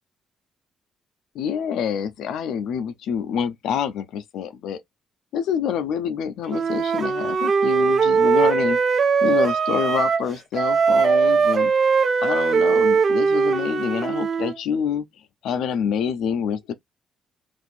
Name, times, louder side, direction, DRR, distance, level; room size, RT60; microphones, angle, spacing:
voice 1, 1.3-4.8 5.3-8.8 9.2-11.7 12.2-15.1 15.4-16.7, left 8 dB, 85° left, 0.5 m, -26 dB
Wind instrument woodwind instrument, 6.5-10.3 10.5-14.6, right 5 dB, 50° right, 0.5 m, -20 dB
2.6 x 2.5 x 4.1 m
cardioid pair, 90°, 0 cm